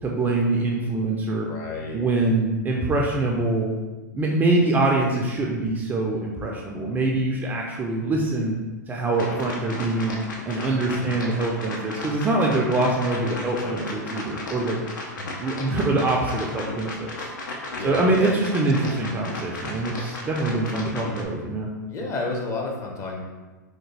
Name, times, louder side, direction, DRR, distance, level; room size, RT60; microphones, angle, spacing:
voice 1, 0.0-1.5 1.9-3.7 4.1-8.5 8.9-14.8 15.4-17.3 17.8-21.7, right 2 dB, 15° right, -1 dB, 0.4 m, -24 dB
voice 2, 1.5-2.0 10.8-11.1 15.1-15.3 17.7-18.3 21.9-23.2, left 3 dB, 30° left, 0 dB, 0.7 m, -31 dB
sound 1, 9.1-21.2, left 2 dB, 75° left, 0.6 m, -35 dB
3.4 x 2.2 x 3.2 m, 1.2 s
hypercardioid pair, 110°, 10 cm